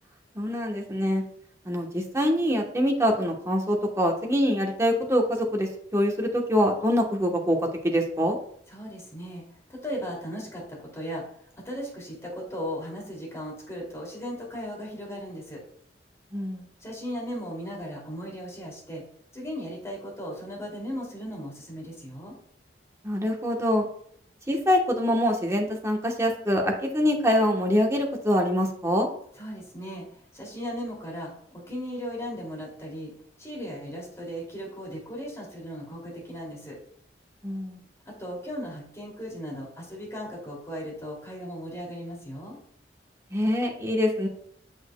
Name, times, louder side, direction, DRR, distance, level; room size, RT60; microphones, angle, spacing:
voice 1, 0.3-1.2 1.6-8.4 16.3-16.7 23.0-23.9 24.5-29.1 37.4-37.8 43.3-44.3, equal, 15° right, 1 dB, 1.1 m, -24 dB
voice 2, 8.7-11.2 11.6-15.6 16.8-19.0 19.3-22.4 29.4-33.1 33.4-36.8 38.0-42.6, equal, 15° left, -3 dB, 2.6 m, -37 dB
7.6 x 6.5 x 2.3 m, 0.62 s
head